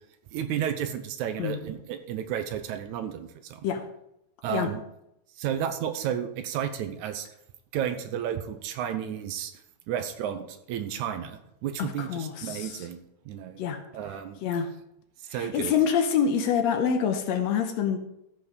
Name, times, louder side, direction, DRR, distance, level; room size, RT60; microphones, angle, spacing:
voice 1, 0.3-3.7 4.4-4.8 5.4-7.3 7.7-9.5 9.9-13.6 13.9-14.4 15.3-15.7, right 9 dB, 80° right, 9 dB, 2.2 m, -32 dB
voice 2, 11.8-12.9 13.6-13.8 14.4-14.7 15.3-18.0, left 7 dB, 70° left, 6 dB, 1.9 m, -26 dB
14.0 x 5.6 x 5.1 m, 0.82 s
omnidirectional pair, 3.4 m